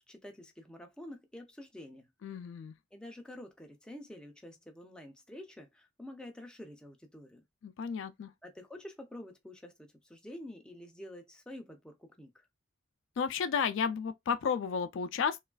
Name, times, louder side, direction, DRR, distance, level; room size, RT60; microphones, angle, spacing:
voice 1, 0.1-2.1 2.9-7.4 8.4-12.5, left 1 dB, 5° left, 0.5 m, -48 dB
voice 2, 2.2-2.7 7.6-8.3 13.2-15.4, left 6 dB, 65° left, 0.3 m, -32 dB
3.0 x 2.3 x 2.2 m
head